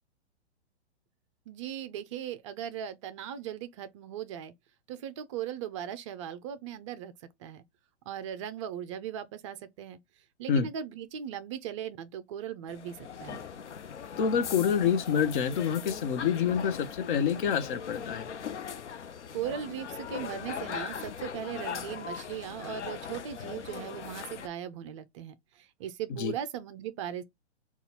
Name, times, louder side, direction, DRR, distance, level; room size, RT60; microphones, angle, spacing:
voice 1, 1.5-4.5 4.9-7.1 7.4-7.6 8.1-10.0 10.4-13.4 19.3-27.2, right 9 dB, 30° right, 0.4 m, -38 dB
sound 1, 12.7-24.5, left 7 dB, 85° left, 0.6 m, -40 dB
voice 2, 14.2-18.3 26.2-26.3, left 7 dB, 45° left, 0.7 m, -27 dB
3.9 x 2.4 x 4.3 m
hypercardioid pair, 120°, 34 cm